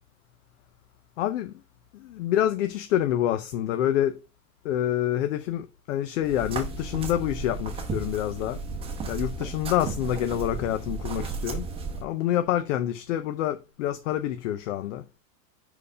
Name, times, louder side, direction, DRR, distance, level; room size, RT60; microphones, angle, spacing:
voice 1, 1.2-1.5 1.9-4.2 4.6-8.6 9.1-11.7 12.0-15.0, left 12 dB, 50° left, 0.6 m, -27 dB
sound 1, 6.2-12.0, right 4 dB, 10° right, 0.9 m, -34 dB
5.0 x 4.7 x 5.4 m
supercardioid pair, 155°, 48 cm